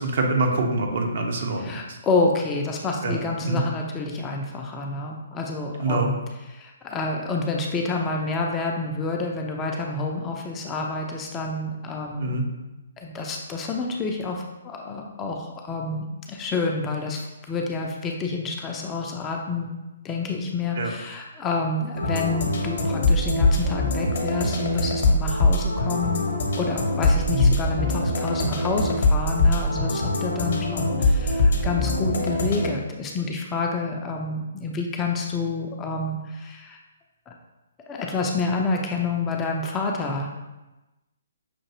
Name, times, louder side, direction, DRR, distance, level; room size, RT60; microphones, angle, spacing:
voice 1, 0.0-2.0 3.0-3.6 5.8-6.1 12.2-12.4 20.8-20.9 27.3-27.6, right 2 dB, 45° right, 2 dB, 0.6 m, -25 dB
voice 2, 1.6-6.2 6.5-12.3 13.0-17.2 17.5-19.7 20.0-26.3 26.6-36.8 37.3-37.4 37.9-40.3, left 3 dB, 15° left, 0 dB, 0.4 m, -28 dB
sound 1, 22.0-32.7, left 2 dB, 50° left, 0.7 m, -23 dB
5.8 x 2.5 x 2.8 m, 1.0 s
figure-of-eight pair, 130°, 0 cm